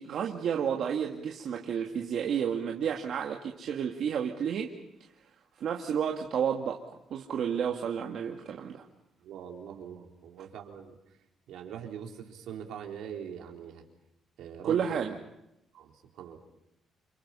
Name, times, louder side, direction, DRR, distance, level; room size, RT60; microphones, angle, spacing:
voice 1, 0.0-4.7 5.6-6.8 7.1-8.8 14.6-15.2, right 8 dB, 65° right, 1 dB, 2.1 m, -31 dB
voice 2, 9.2-11.0 11.5-13.8 14.4-14.9 15.7-16.4, right 8 dB, 85° right, 1 dB, 4.1 m, -42 dB
29.0 x 25.5 x 5.6 m, 0.85 s
cardioid pair, 90°, 0 cm